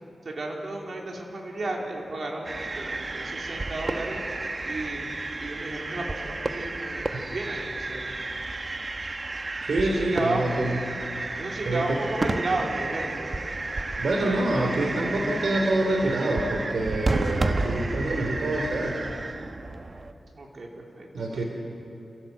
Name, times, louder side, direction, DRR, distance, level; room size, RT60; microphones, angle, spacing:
voice 1, 0.2-4.2 4.7-5.1 5.4-8.2 9.8-10.4 11.4-13.5 14.2-14.4 20.3-21.4, right 2 dB, 60° right, -1 dB, 4.0 m, -33 dB
sound 1, 2.4-20.1, right 2 dB, 40° right, 1.2 m, -32 dB
voice 2, 9.6-10.8 11.6-12.0 14.0-19.1 21.1-21.4, right 2 dB, 80° right, 1 dB, 3.1 m, -26 dB
29.5 x 17.0 x 8.0 m, 2.8 s
wide cardioid pair, 75°, 0 cm